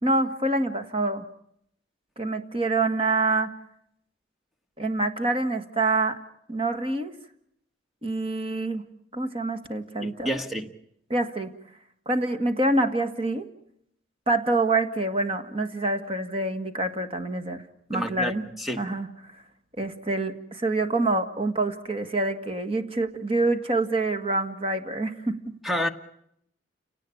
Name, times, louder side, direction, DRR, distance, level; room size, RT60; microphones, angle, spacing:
voice 1, 0.0-1.2 2.2-3.5 4.8-6.2 6.5-7.1 8.0-8.8 9.1-10.3 11.1-11.5 12.0-13.5 14.3-17.6 17.9-18.5 18.8-19.1 19.8-25.5, right 2 dB, 30° right, 1.8 m, -26 dB
voice 2, 10.0-10.7 17.9-18.3 18.6-18.8 25.6-25.9, equal, ahead, 1.4 m, -29 dB
30.0 x 18.0 x 8.6 m
head